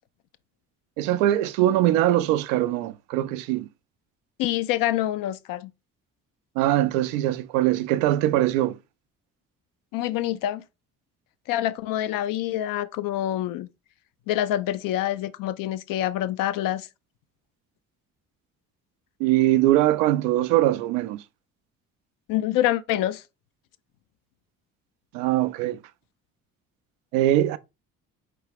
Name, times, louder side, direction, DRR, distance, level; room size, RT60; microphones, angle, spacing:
voice 1, 1.0-3.7 6.6-8.8 19.2-21.2 25.1-25.8 27.1-27.6, right 14 dB, 65° right, 0.5 m, -22 dB
voice 2, 4.4-5.7 9.9-10.6 11.5-13.7 14.3-16.9 22.3-23.2, left 13 dB, 50° left, 0.5 m, -26 dB
4.6 x 3.4 x 3.3 m
figure-of-eight pair, 45°, 43 cm